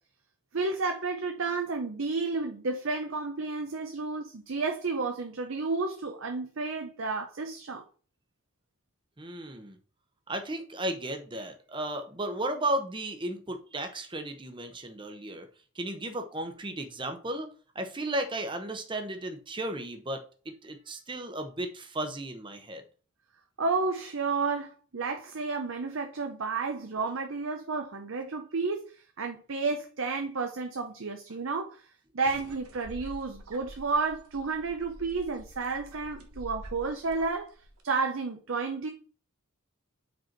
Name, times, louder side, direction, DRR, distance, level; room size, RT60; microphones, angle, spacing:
voice 1, 0.5-7.8 23.6-31.8 32.1-37.5 37.8-38.9, right 4 dB, 60° right, 4 dB, 0.7 m, -31 dB
voice 2, 9.2-9.8 10.3-15.5 15.7-17.5 17.7-22.8, right 1 dB, 20° right, 6 dB, 0.8 m, -34 dB
sound 1, 32.2-37.8, right 1 dB, 90° right, 1.2 m, -47 dB
5.2 x 4.4 x 4.5 m, 0.39 s
head